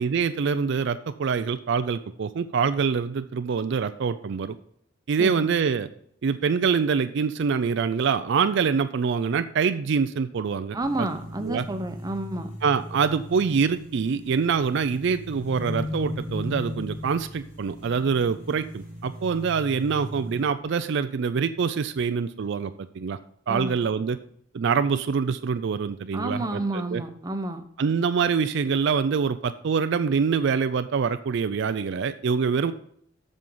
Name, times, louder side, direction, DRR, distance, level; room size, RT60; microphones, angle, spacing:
voice 1, 0.0-4.6 5.1-5.9 6.2-10.8 11.4-11.6 12.6-23.2 23.5-24.2 24.5-27.0 27.8-32.7, right 6 dB, 60° right, 11 dB, 0.4 m, -25 dB
voice 2, 5.2-5.5 10.7-12.5 23.5-23.8 26.1-27.6, right 2 dB, 20° right, 7 dB, 0.7 m, -30 dB
sound 1, 10.8-20.4, left 1 dB, 65° left, 3.9 m, -37 dB
7.6 x 6.4 x 5.4 m, 0.69 s
head